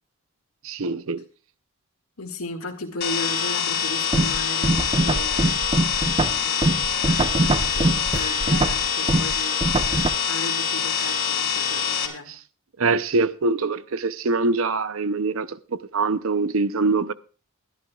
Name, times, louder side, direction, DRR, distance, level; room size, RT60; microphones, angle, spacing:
voice 1, 0.6-1.2 12.8-17.1, right 3 dB, 70° right, 0.7 m, -24 dB
voice 2, 2.2-5.7 6.4-9.7 10.3-12.3, left 2 dB, 85° left, 2.0 m, -36 dB
sound 1, 3.0-12.1, left 7 dB, 50° left, 2.6 m, -25 dB
sound 2, 4.1-10.1, right 2 dB, 25° right, 0.6 m, -23 dB
22.5 x 11.0 x 2.4 m
head